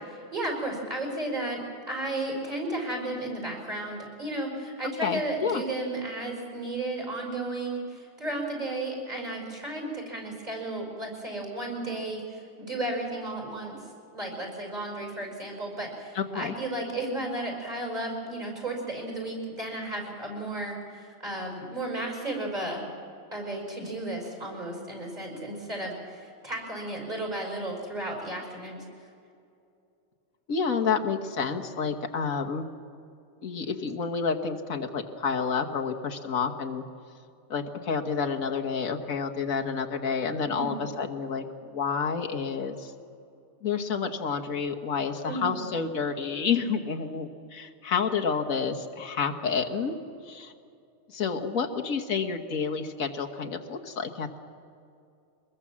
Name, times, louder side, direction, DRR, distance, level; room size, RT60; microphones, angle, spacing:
voice 1, 0.3-22.9 23.3-28.8 40.4-40.8 45.3-45.6, right 2 dB, 30° right, 1 dB, 5.6 m, -34 dB
voice 2, 5.0-5.6 16.1-16.5 30.5-32.6 33.4-36.8 37.5-42.9 43.6-50.0 50.3-50.5 51.1-54.4, left 5 dB, 80° left, 3 dB, 1.7 m, -29 dB
24.0 x 21.0 x 7.4 m, 2.6 s
omnidirectional pair, 1.4 m